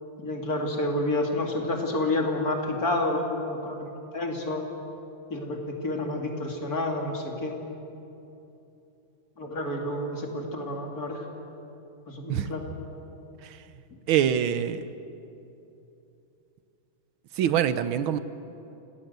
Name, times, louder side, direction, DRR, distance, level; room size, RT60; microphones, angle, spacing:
voice 1, 0.2-4.6 5.3-7.5 9.4-11.3 12.1-12.6, left 1 dB, 45° left, 1 dB, 3.1 m, -29 dB
voice 2, 14.1-14.8 17.3-18.2, right 9 dB, 80° right, 13 dB, 1.7 m, -25 dB
28.0 x 18.5 x 8.1 m, 2.8 s
omnidirectional pair, 2.2 m